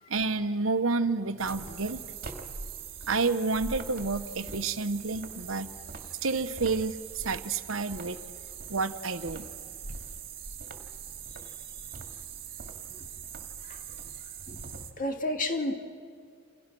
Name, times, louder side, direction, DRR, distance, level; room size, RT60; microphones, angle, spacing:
voice 1, 0.1-2.0 3.1-5.7 6.2-8.2 8.7-9.5, right 3 dB, 75° right, 10 dB, 1.1 m, -29 dB
sound 1, 1.4-14.9, right 6 dB, 50° right, 2.2 m, -42 dB
voice 2, 14.5-15.7, left 2 dB, 40° left, 4 dB, 2.2 m, -33 dB
29.0 x 28.5 x 6.2 m, 2.2 s
head